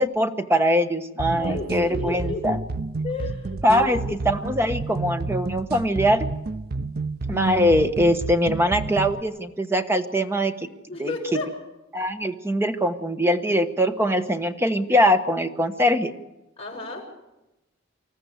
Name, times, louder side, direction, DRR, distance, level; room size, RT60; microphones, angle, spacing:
voice 1, 0.0-2.6 3.6-4.0 4.2-6.3 7.3-10.5 11.0-11.4 11.9-16.1, equal, 15° right, 8 dB, 1.1 m, -22 dB
sound 1, 1.2-9.2, right 3 dB, 50° right, 0.6 m, -30 dB
voice 2, 1.3-2.5 3.0-4.2 10.9-11.6 16.6-17.0, left 2 dB, 30° left, -2 dB, 6.4 m, -32 dB
26.0 x 14.0 x 8.0 m, 0.98 s
head